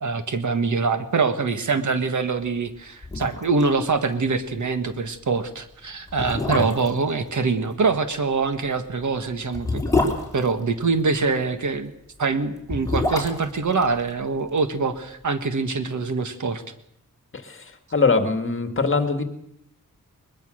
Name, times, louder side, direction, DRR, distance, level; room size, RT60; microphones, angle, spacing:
voice 1, 0.0-9.8 10.3-11.9 12.2-16.6, right 4 dB, 65° right, 9 dB, 1.7 m, -24 dB
sound 1, 3.0-3.7 4.0-4.1 4.5-4.6 5.3-5.4 6.1-7.0 8.5-11.2 12.5-14.7 15.0-15.1, left 2 dB, 10° left, 3.8 m, -27 dB
voice 2, 17.9-19.2, left 4 dB, 40° left, 7 dB, 2.0 m, -22 dB
21.5 x 21.0 x 6.5 m, 0.76 s
wide cardioid pair, 145°, 32 cm